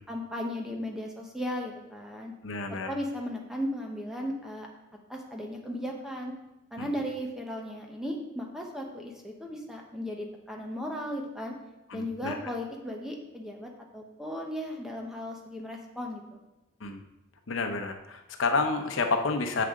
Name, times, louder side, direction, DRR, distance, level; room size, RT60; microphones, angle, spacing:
voice 1, 0.1-2.3 2.7-4.7 5.1-6.3 6.7-11.5 11.9-16.4, equal, 5° right, 0 dB, 1.0 m, -36 dB
voice 2, 2.4-2.9 6.8-6.9 11.9-12.5 16.8-17.0 17.5-19.6, left 4 dB, 80° left, 5 dB, 0.8 m, -30 dB
7.7 x 6.7 x 3.8 m, 0.97 s
head